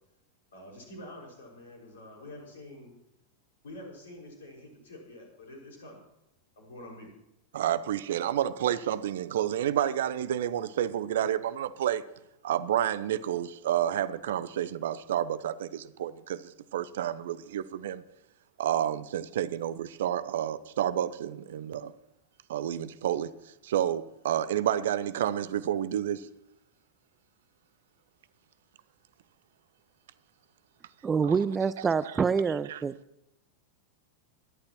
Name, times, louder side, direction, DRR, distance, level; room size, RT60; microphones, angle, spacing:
voice 1, 0.5-2.9 3.6-6.0 6.6-7.1, left 1 dB, 65° left, 0 dB, 5.7 m, -47 dB
voice 2, 7.5-12.0 12.4-18.0 18.6-21.9 22.5-23.3 23.6-26.3 31.2-31.4 32.0-32.2 32.7-32.8, right 11 dB, 60° right, 16 dB, 0.7 m, -30 dB
voice 3, 31.0-32.9, right 5 dB, 15° right, 16 dB, 0.5 m, -26 dB
25.0 x 11.5 x 3.1 m, 0.87 s
figure-of-eight pair, 90°, 0 cm